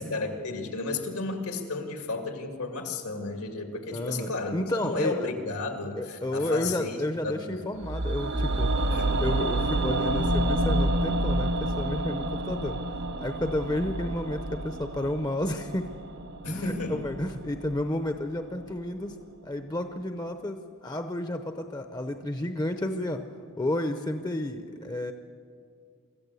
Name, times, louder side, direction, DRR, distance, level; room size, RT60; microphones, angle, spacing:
voice 1, 0.0-7.0 7.2-7.8 8.9-9.2 16.4-17.0, left 3 dB, 85° left, 4 dB, 2.4 m, -33 dB
voice 2, 3.9-5.3 6.0-8.7 9.2-12.8 13.2-15.9 16.4-19.2 19.4-23.3 23.6-25.1, left 1 dB, 20° left, 7 dB, 0.7 m, -31 dB
sound 1, 7.8-17.9 18.2-18.3, right 1 dB, 50° right, 0.8 m, -29 dB
24.5 x 14.5 x 8.3 m, 2.2 s
head